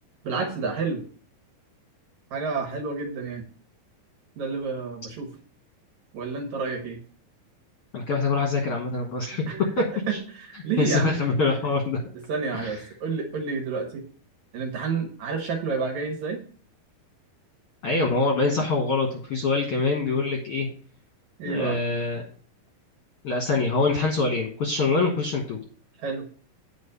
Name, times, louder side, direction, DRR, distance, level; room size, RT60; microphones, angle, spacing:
voice 1, 0.2-1.0 2.3-3.5 4.4-5.3 6.1-7.0 9.5-11.2 12.3-14.1 14.5-16.4 21.4-21.8 26.0-26.3, right 4 dB, 60° right, 3 dB, 2.3 m, -29 dB
voice 2, 7.9-9.4 9.8-9.9 10.1-10.2 10.8-12.0 12.5-12.7 17.8-20.7 21.4-22.2 23.2-25.6, left 3 dB, 60° left, 1 dB, 1.6 m, -24 dB
9.0 x 4.2 x 6.9 m, 0.43 s
omnidirectional pair, 4.3 m